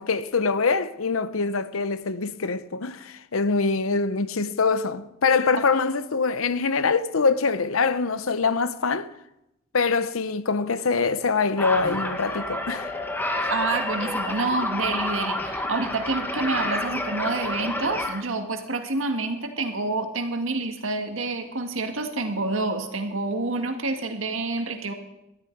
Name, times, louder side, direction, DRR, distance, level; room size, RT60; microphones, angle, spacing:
voice 1, 0.0-9.1 9.7-12.9, left 4 dB, 85° left, 0.8 m, -24 dB
sound 1, 11.6-18.2, left 1 dB, 10° left, 1.3 m, -29 dB
voice 2, 13.5-24.9, right 3 dB, 70° right, 1.8 m, -28 dB
18.5 x 12.5 x 4.7 m
head